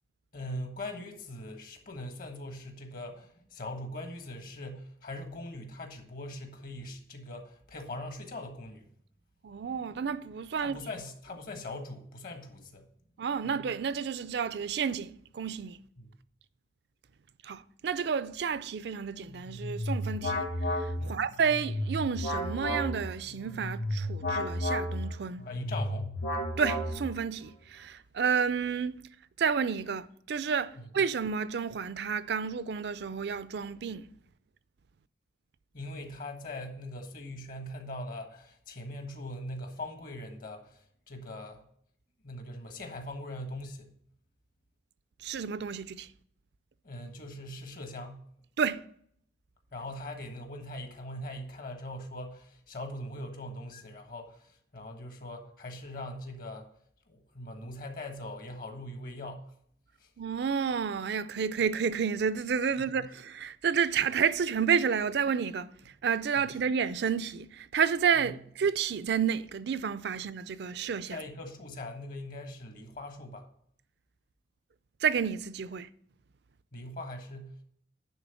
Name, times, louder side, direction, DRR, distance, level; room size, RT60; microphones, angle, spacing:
voice 1, 0.3-8.8 10.6-12.8 13.4-13.6 16.0-16.1 21.0-21.2 25.4-26.2 30.8-30.9 35.7-41.6 42.2-43.9 46.8-48.2 49.7-56.7 57.1-59.5 60.0-60.1 62.7-63.0 66.3-66.5 68.2-68.3 71.1-73.5 76.7-77.6, left 1 dB, 55° left, 1.4 m, -41 dB
voice 2, 9.4-10.8 13.2-15.8 17.4-25.4 26.6-29.0 29.4-34.1 45.2-46.1 48.6-48.8 60.2-65.7 66.0-71.2 75.0-75.9, right 6 dB, 65° right, 0.4 m, -30 dB
sound 1, 19.3-27.3, left 1 dB, 75° left, 3.3 m, -33 dB
10.5 x 3.6 x 6.9 m
head